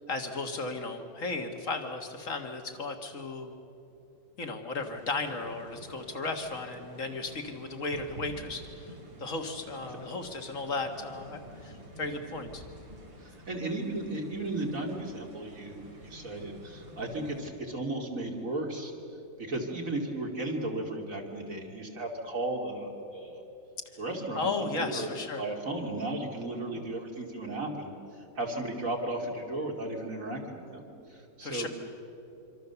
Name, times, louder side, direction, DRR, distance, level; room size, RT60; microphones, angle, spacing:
voice 1, 0.1-3.5 4.4-8.9 9.2-12.6 24.4-25.4 31.4-31.7, left 3 dB, 45° left, 5 dB, 1.9 m, -35 dB
sound 1, 4.8-17.4, right 1 dB, 75° right, 4.1 m, -50 dB
voice 2, 13.2-18.9 19.4-23.4 24.0-25.1 25.4-27.9 28.3-31.7, right 2 dB, 45° right, 0 dB, 3.0 m, -35 dB
25.5 x 25.0 x 7.0 m, 2.9 s
omnidirectional pair, 2.1 m